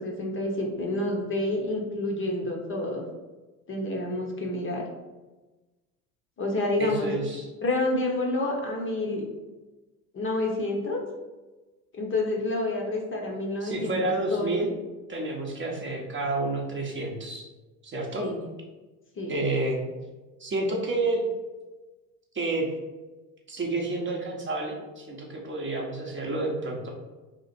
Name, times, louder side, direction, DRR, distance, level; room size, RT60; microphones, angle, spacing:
voice 1, 0.0-3.0 3.7-4.8 6.4-7.1 7.6-9.2 10.1-11.0 12.0-14.5 18.2-18.5 19.2-19.4, left 2 dB, 25° left, 0 dB, 0.7 m, -29 dB
voice 2, 6.8-7.5 13.6-14.7 15.1-17.5 17.8-18.3 19.3-19.8 20.4-21.2 22.3-22.7 23.5-26.9, right 2 dB, 25° right, -1 dB, 0.7 m, -29 dB
2.8 x 2.4 x 4.1 m, 1.2 s
hypercardioid pair, 75°, 46 cm